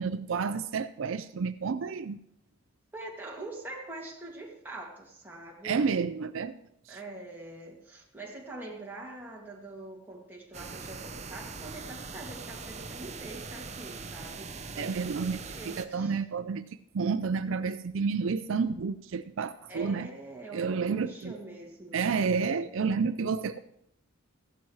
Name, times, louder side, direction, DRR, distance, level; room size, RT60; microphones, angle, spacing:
voice 1, 0.0-2.2 5.6-6.5 6.9-7.0 14.8-15.4 15.7-16.6 16.9-20.1 20.5-21.3 21.9-23.6, right 5 dB, 70° right, 11 dB, 0.4 m, -30 dB
voice 2, 2.9-5.9 6.9-16.2 19.7-22.0, right 2 dB, 10° right, -3 dB, 2.2 m, -44 dB
sound 1, 10.5-15.9, right 4 dB, 30° right, 0.7 m, -42 dB
15.0 x 11.5 x 3.2 m, 0.75 s
head